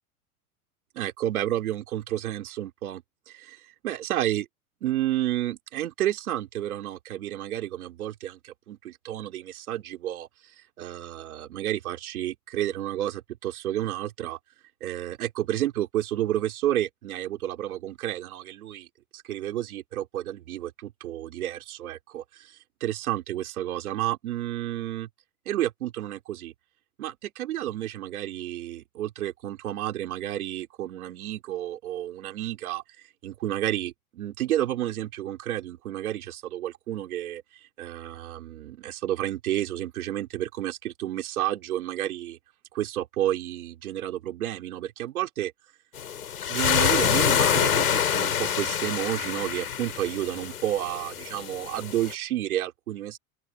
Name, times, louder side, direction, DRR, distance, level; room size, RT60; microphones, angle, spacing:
voice 1, 0.9-4.5 4.8-10.3 10.8-14.4 14.8-18.9 19.1-25.1 25.5-26.5 27.0-32.8 33.2-37.4 37.8-42.4 42.7-45.5 46.5-53.2, right 13 dB, 70° right, 4.3 m, -31 dB
sound 1, 46.0-52.1, left 8 dB, 80° left, 5.9 m, -26 dB
open air
hypercardioid pair, 95°, 44 cm